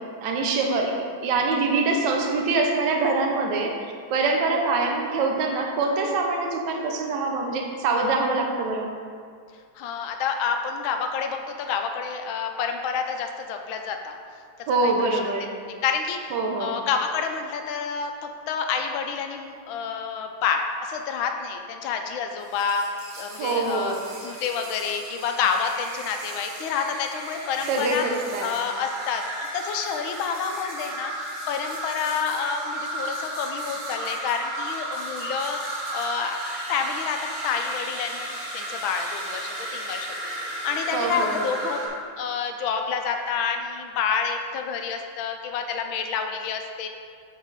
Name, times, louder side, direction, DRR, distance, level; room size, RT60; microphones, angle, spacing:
voice 1, 0.2-0.9 1.2-3.7 4.1-8.9 14.7-15.5 16.3-16.8 23.4-24.1 27.7-28.5 40.9-41.5, right 3 dB, 65° right, 2 dB, 1.3 m, -24 dB
voice 2, 9.7-14.1 14.8-15.2 15.7-16.3 16.6-22.8 23.2-24.0 24.2-28.0 28.4-36.4 36.7-40.1 40.4-41.8 42.2-46.9, left 6 dB, 90° left, 5 dB, 1.4 m, -28 dB
sound 1, 22.4-41.9, right 1 dB, 90° right, 2.2 m, -34 dB
7.2 x 5.0 x 4.0 m, 2.2 s
omnidirectional pair, 2.2 m